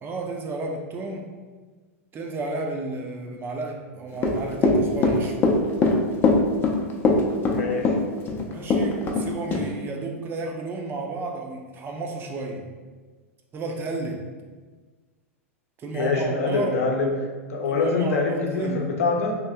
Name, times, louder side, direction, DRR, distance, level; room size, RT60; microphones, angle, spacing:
voice 1, 0.0-1.3 2.1-5.4 8.5-12.7 13.5-14.3 15.8-16.8 17.7-18.9, right 2 dB, 30° right, 2 dB, 0.6 m, -32 dB
Run / Walk footsteps, 4.2-9.2 9.5-9.6, left 3 dB, 30° left, 0.5 m, -20 dB
voice 2, 7.5-8.0 15.9-17.1 17.5-19.4, left 3 dB, 70° left, 1 dB, 0.7 m, -24 dB
2.9 x 2.6 x 3.5 m, 1.4 s
hypercardioid pair, 100°, 8 cm